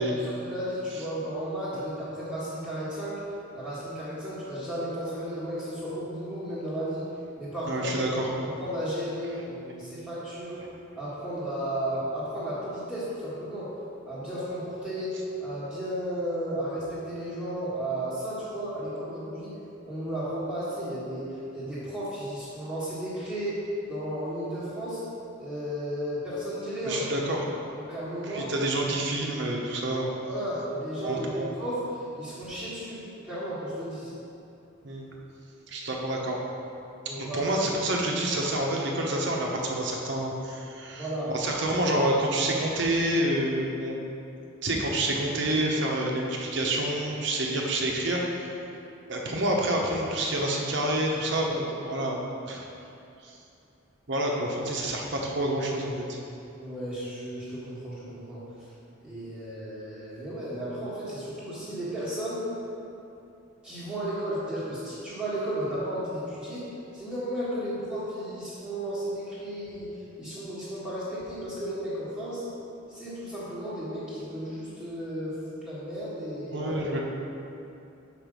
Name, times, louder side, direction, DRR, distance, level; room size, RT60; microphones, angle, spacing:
voice 1, 0.0-3.2 3.5-7.1 7.4-7.9 8.6-10.6 10.9-13.7 14.1-19.5 19.9-25.0 25.4-27.0 27.8-28.5 30.2-31.8 32.2-34.1 37.0-37.5 40.9-41.3 56.6-58.4 59.0-62.5 63.6-66.7 66.9-72.4 72.9-75.4 75.6-76.7, right 1 dB, 5° right, -11 dB, 1.4 m, -34 dB
voice 2, 7.7-8.3 26.9-27.4 28.3-30.1 31.0-31.5 34.8-35.1 35.7-36.4 37.1-41.1 41.3-44.0 44.6-48.2 49.1-52.7 53.2-53.3 54.1-56.2 76.5-77.0, right 1 dB, 55° right, -1 dB, 0.9 m, -28 dB
5.2 x 4.9 x 6.2 m, 2.7 s
head